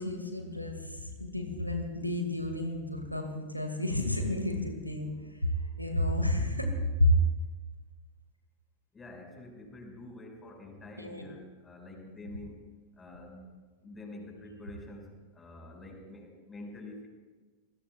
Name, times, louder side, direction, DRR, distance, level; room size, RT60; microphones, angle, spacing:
voice 1, 0.0-5.1 5.4-5.5 5.8-6.7 7.0-7.2 11.0-11.2, left 1 dB, 90° left, 4 dB, 1.9 m, -30 dB
voice 2, 8.9-17.1, left 1 dB, 15° left, 1 dB, 5.1 m, -47 dB
27.0 x 20.5 x 2.3 m, 1.3 s
figure-of-eight pair, 90°, 0 cm